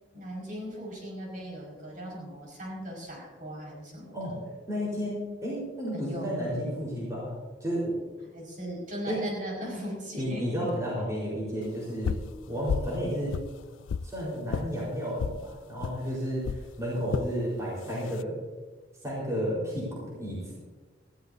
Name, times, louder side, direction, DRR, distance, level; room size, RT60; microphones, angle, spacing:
voice 1, 0.1-4.4 5.9-6.7 8.3-10.7 11.0-11.1, equal, 45° right, -2 dB, 5.3 m, -38 dB
voice 2, 4.7-7.3 7.6-7.9 9.1-9.2 10.2-13.4 14.0-18.4 19.0-20.5, equal, 15° right, -6 dB, 4.2 m, -32 dB
sound 1, 12.0-12.3 12.7-13.0 13.3-14.1 14.5-14.7 15.2-15.4 15.8-16.0 16.4-16.6 17.1-17.3 17.9-18.2, left 6 dB, 85° left, 0.3 m, -31 dB
19.0 x 15.0 x 2.7 m, 1.3 s
head